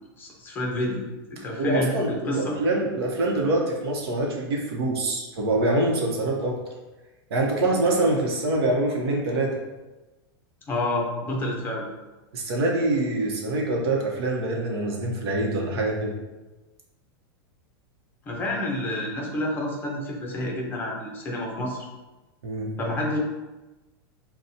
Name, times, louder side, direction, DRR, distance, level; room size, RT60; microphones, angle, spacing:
voice 1, 0.2-1.0 1.3-2.6 10.7-11.9 18.3-21.9 22.8-23.2, left 1 dB, 15° left, -2 dB, 0.7 m, -29 dB
voice 2, 1.6-6.6 7.3-9.6 12.3-16.1 22.4-22.7, right 2 dB, 80° right, -1 dB, 0.9 m, -25 dB
5.7 x 2.2 x 2.7 m, 1.1 s
supercardioid pair, 160°, 13 cm